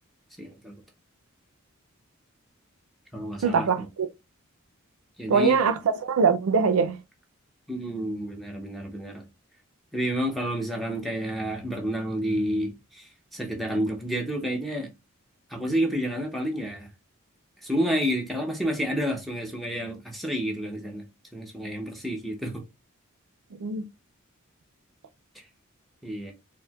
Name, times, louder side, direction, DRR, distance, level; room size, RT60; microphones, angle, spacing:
voice 1, 0.4-0.7 3.1-3.9 5.2-5.6 7.7-9.3 9.9-14.9 15.5-16.9 17.6-21.1 21.3-22.6 26.0-26.3, equal, ahead, 0.6 m, -30 dB
voice 2, 3.4-3.8 5.3-6.9 23.6-23.8, right 5 dB, 85° right, 0.4 m, -22 dB
4.3 x 2.1 x 2.2 m
head